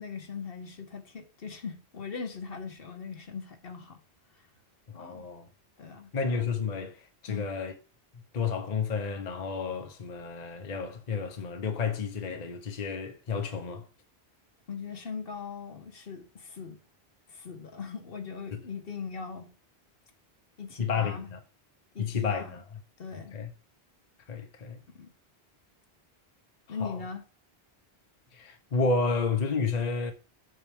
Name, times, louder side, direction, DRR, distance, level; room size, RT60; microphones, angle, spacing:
voice 1, 0.0-4.0 4.9-5.3 5.8-6.1 7.3-7.5 14.7-16.8 17.3-19.5 20.6-21.3 21.9-22.5 23.0-23.4 24.9-25.1 26.7-27.2, left 5 dB, 60° left, 1.3 m, -40 dB
voice 2, 4.9-5.5 6.1-7.7 8.3-13.8 20.8-21.4 22.0-22.6 23.3-23.5 24.3-24.8 26.8-27.0 28.3-30.1, left 4 dB, 45° left, 0.9 m, -31 dB
7.8 x 6.3 x 3.5 m
omnidirectional pair, 1.1 m